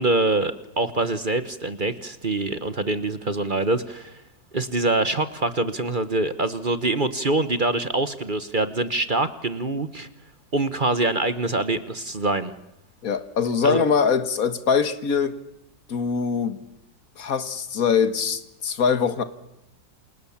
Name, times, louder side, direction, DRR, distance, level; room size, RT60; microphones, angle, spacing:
voice 1, 0.0-4.2 4.5-10.1 10.5-12.5 13.6-13.8, right 2 dB, 35° right, 13 dB, 1.0 m, -24 dB
voice 2, 13.0-15.4 15.9-16.6 17.2-19.2, left 6 dB, 50° left, 12 dB, 1.9 m, -23 dB
28.5 x 28.5 x 7.3 m, 0.84 s
omnidirectional pair, 2.0 m